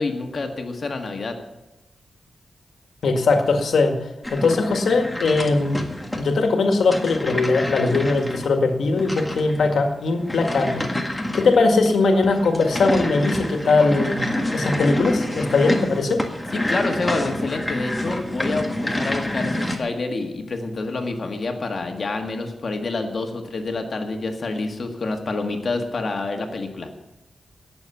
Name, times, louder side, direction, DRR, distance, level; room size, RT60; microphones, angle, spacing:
voice 1, 0.0-1.4 16.5-26.9, left 3 dB, 45° left, 4 dB, 1.8 m, -27 dB
voice 2, 3.0-4.0 4.3-5.9 6.2-10.8 11.3-14.2 14.5-16.2, left 3 dB, 80° left, 4 dB, 1.9 m, -20 dB
sound 1, 4.2-19.8, left 1 dB, 5° left, 1.7 m, -28 dB
18.0 x 7.1 x 7.1 m, 0.98 s
wide cardioid pair, 130°, 0 cm